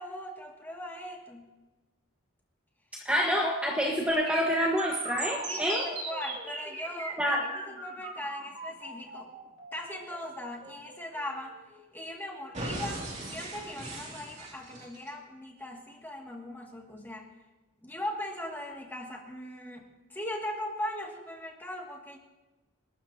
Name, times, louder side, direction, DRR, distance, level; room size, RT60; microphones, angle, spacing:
voice 1, 0.0-1.5 3.2-3.3 5.4-9.3 9.7-11.6 11.9-13.0 13.3-17.3 17.8-22.2, left 1 dB, 10° left, -1 dB, 2.2 m, -39 dB
voice 2, 3.0-5.8 7.2-7.5, equal, 5° right, -3 dB, 1.4 m, -27 dB
sound 1, 4.1-12.0 12.5-15.1, right 3 dB, 35° right, 2.8 m, -38 dB
29.5 x 13.0 x 2.9 m, 1.1 s
head